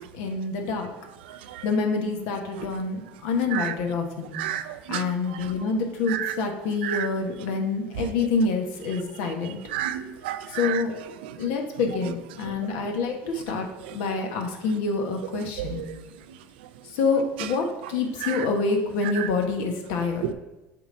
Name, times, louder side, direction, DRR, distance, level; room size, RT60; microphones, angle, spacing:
voice 1, 0.1-0.9 1.6-4.4 4.9-9.6 10.5-10.9 11.4-13.7 13.9-15.8 16.9-20.3, left 4 dB, 75° left, 3 dB, 1.2 m, -27 dB
voice 2, 9.7-10.8 15.8-15.9 18.2-18.4, right 12 dB, 85° right, 12 dB, 0.4 m, -30 dB
7.9 x 3.9 x 3.9 m, 1.0 s
supercardioid pair, 90°, 5 cm